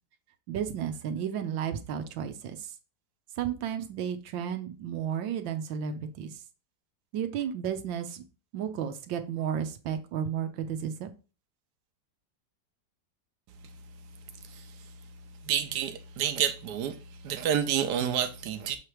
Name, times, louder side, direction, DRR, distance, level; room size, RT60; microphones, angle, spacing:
voice 1, 0.5-2.7 3.4-6.3 7.1-8.2 8.5-11.1, right 8 dB, 90° right, 1.5 m, -33 dB
voice 2, 15.4-17.0 17.2-18.8, right 9 dB, 65° right, 1.3 m, -29 dB
6.6 x 3.0 x 4.8 m
omnidirectional pair, 2.0 m